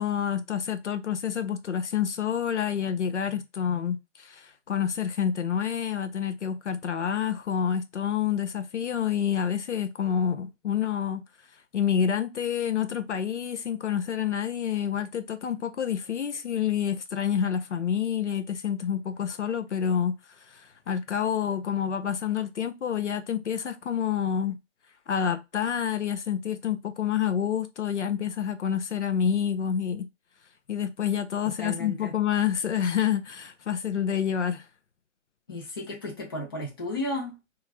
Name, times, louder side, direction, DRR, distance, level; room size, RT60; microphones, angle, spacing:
voice 1, 0.0-11.2 11.7-20.1 20.5-24.6 25.1-30.1 30.7-34.7, left 8 dB, 65° left, 0.5 m, -28 dB
voice 2, 31.6-32.1 35.5-37.3, left 1 dB, 20° left, 0.5 m, -34 dB
3.0 x 2.3 x 2.2 m
figure-of-eight pair, 140°, 38 cm